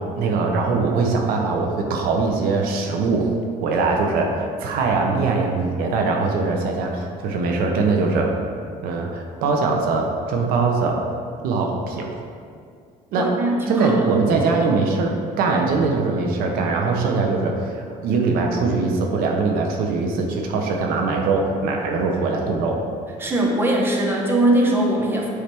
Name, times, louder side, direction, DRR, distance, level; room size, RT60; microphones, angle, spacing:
voice 1, 0.0-3.3 3.6-8.3 8.8-11.0 11.4-12.1 13.1-13.3 13.7-22.8, right 4 dB, 85° right, 2 dB, 0.9 m, -22 dB
voice 2, 13.2-14.1 23.2-25.3, right 1 dB, 15° right, -1 dB, 0.9 m, -20 dB
8.5 x 3.3 x 4.4 m, 2.2 s
cardioid pair, 140°, 15 cm